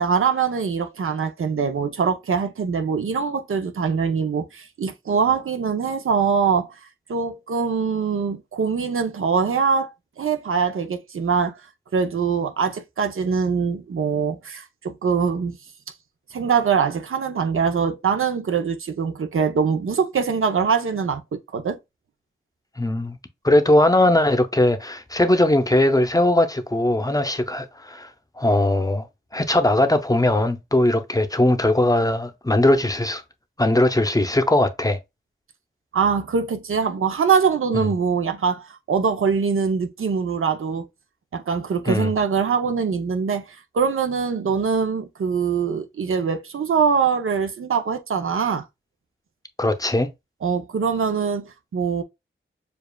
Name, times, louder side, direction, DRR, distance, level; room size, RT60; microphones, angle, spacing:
voice 1, 0.0-6.8 7.1-9.9 10.2-11.5 11.9-15.6 16.3-21.8 35.9-40.9 41.3-48.6 50.4-52.0, right 6 dB, 85° right, 0.6 m, -23 dB
voice 2, 22.8-23.2 23.4-28.1 28.4-29.1 29.3-33.2 33.6-35.0 37.7-37.9 41.9-42.1 49.6-50.1, left 1 dB, 15° left, 0.5 m, -19 dB
6.9 x 2.4 x 2.2 m
wide cardioid pair, 100°, 21 cm